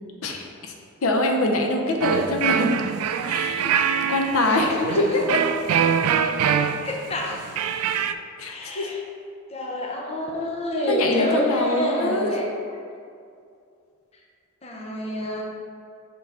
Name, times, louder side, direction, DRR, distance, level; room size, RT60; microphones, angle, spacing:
voice 1, 0.2-0.7 1.0-2.7 3.2-3.7 4.1-5.4 8.4-8.9 10.9-12.3, left 1 dB, 75° left, 2 dB, 0.6 m, -24 dB
sound 1, 2.0-8.1, right 8 dB, 90° right, 0.3 m, -24 dB
voice 2, 4.5-5.2 6.8-7.4 8.5-9.0 9.5-12.5 14.6-15.4, left 1 dB, 30° left, -1 dB, 0.6 m, -27 dB
6.4 x 3.8 x 4.2 m, 2.4 s
head